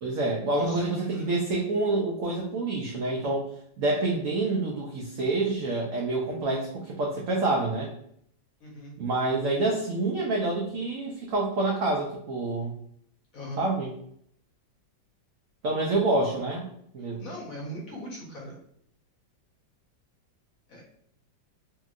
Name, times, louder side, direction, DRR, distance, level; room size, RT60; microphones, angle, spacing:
voice 1, 0.0-3.5 3.8-7.9 9.0-12.7 13.6-13.9 15.6-16.7 16.9-17.2, right 2 dB, 80° right, -1 dB, 0.7 m, -27 dB
voice 2, 0.5-1.3 8.6-9.0 13.3-13.7 17.0-18.6 20.7-20.8, equal, 60° left, -2 dB, 1.0 m, -39 dB
2.8 x 2.8 x 2.4 m, 0.67 s
omnidirectional pair, 2.0 m